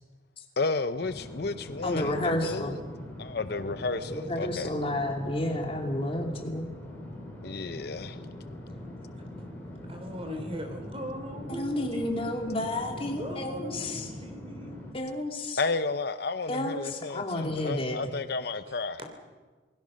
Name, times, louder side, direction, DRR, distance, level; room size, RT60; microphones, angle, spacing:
voice 1, 0.6-2.8 3.2-4.7 7.4-8.2 15.6-19.0, left 3 dB, 55° left, 11 dB, 0.6 m, -32 dB
sound 1, 1.0-14.9, left 1 dB, 10° left, 5.2 m, -42 dB
voice 2, 1.8-2.7 4.1-6.7 11.5-14.1 14.9-15.6 16.5-18.0, left 1 dB, 30° left, 2 dB, 2.9 m, -31 dB
voice 3, 9.8-12.6 12.9-14.8 18.7-18.8, equal, 30° right, 5 dB, 3.3 m, -40 dB
28.0 x 20.5 x 6.4 m, 1.4 s
head